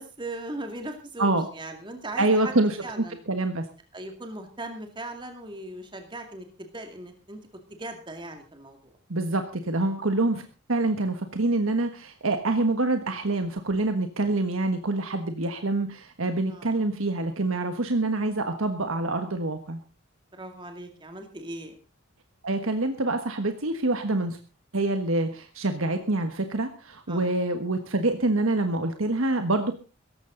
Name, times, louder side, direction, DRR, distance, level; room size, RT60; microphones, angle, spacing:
voice 1, 0.0-2.5 2.8-3.2 3.9-7.4 7.7-8.9 16.5-16.8 20.3-21.8 27.1-27.3, right 1 dB, 20° right, 5 dB, 2.2 m, -38 dB
voice 2, 2.2-2.8 3.3-3.7 9.1-10.4 10.7-19.8 22.4-24.4 24.7-29.7, right 2 dB, 75° right, 7 dB, 1.4 m, -26 dB
17.0 x 15.0 x 3.9 m, 0.33 s
head